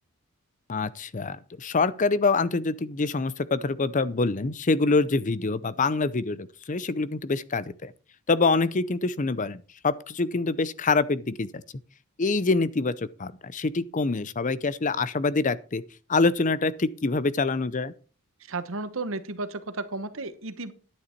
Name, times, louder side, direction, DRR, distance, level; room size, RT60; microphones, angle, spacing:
voice 1, 0.7-7.9 8.3-11.6 12.2-15.8 16.1-17.9, left 3 dB, 35° left, 0.6 m, -25 dB
voice 2, 18.4-20.7, right 3 dB, 60° right, 1.1 m, -33 dB
11.0 x 9.8 x 4.4 m
head